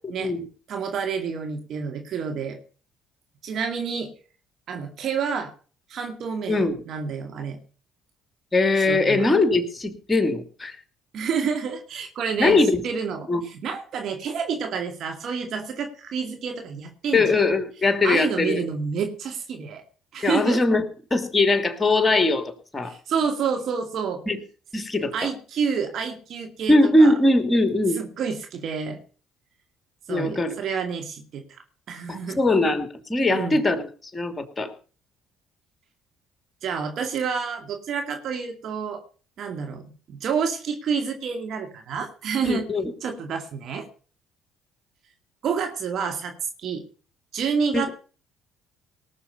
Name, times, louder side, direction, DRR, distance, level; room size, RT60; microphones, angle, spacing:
voice 1, 0.7-2.6 3.4-4.1 4.7-5.5 5.9-7.6 8.8-9.3 11.1-17.3 18.0-19.8 20.1-20.6 22.8-24.2 25.1-27.2 28.0-29.0 30.1-31.4 31.9-32.4 33.3-33.6 36.6-39.0 39.4-42.7 43.0-43.9 45.4-46.3 46.6-46.8 47.3-47.9, right 6 dB, 60° right, 5 dB, 2.3 m, -29 dB
voice 2, 8.5-10.8 12.4-12.8 13.3-13.4 17.1-18.6 20.2-20.8 21.1-22.9 24.3-24.4 24.7-25.1 26.7-28.0 30.1-30.6 32.1-34.7 42.4-42.8 47.7-47.8, left 2 dB, 20° left, 9 dB, 2.8 m, -21 dB
18.5 x 6.8 x 6.8 m, 0.39 s
hypercardioid pair, 60°, 0 cm